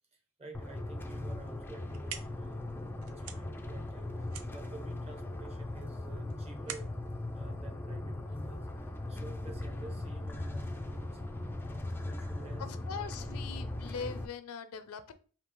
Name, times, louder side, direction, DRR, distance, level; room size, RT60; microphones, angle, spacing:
voice 1, 0.1-6.9 7.3-11.2 11.6-12.7 13.2-13.3, right 2 dB, 30° right, 0.9 m, -51 dB
sound 1, 0.5-14.3, left 2 dB, 10° left, 0.3 m, -39 dB
sound 2, 1.7-8.5, right 9 dB, 85° right, 0.5 m, -49 dB
voice 2, 12.6-15.1, left 6 dB, 90° left, 0.5 m, -41 dB
5.0 x 2.8 x 3.0 m
head